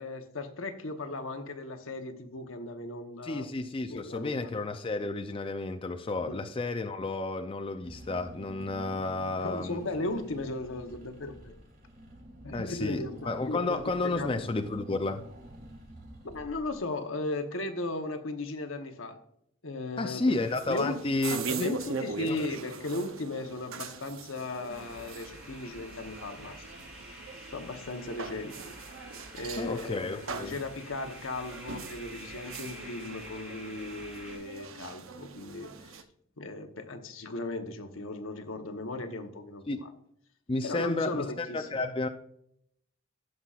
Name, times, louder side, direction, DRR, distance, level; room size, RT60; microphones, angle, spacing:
voice 1, 0.0-3.5 3.9-4.5 6.3-6.4 9.4-11.6 12.4-14.4 16.2-19.2 19.6-20.3 20.7-21.0 21.6-26.9 27.5-28.7 29.3-35.7 36.4-39.9 40.6-41.8, left 2 dB, 80° left, 1.0 m, -37 dB
voice 2, 3.2-9.8 12.5-15.2 20.0-21.8 22.3-22.4 29.6-30.6 39.7-39.8 40.5-42.1, left 2 dB, 25° left, 0.4 m, -32 dB
Car / Engine, 7.8-17.0, equal, 45° right, 2.2 m, -48 dB
sound 1, 20.3-36.0, right 4 dB, 80° right, 0.8 m, -41 dB
sound 2, 24.7-34.4, equal, 5° right, 3.5 m, -48 dB
16.0 x 5.6 x 2.4 m
head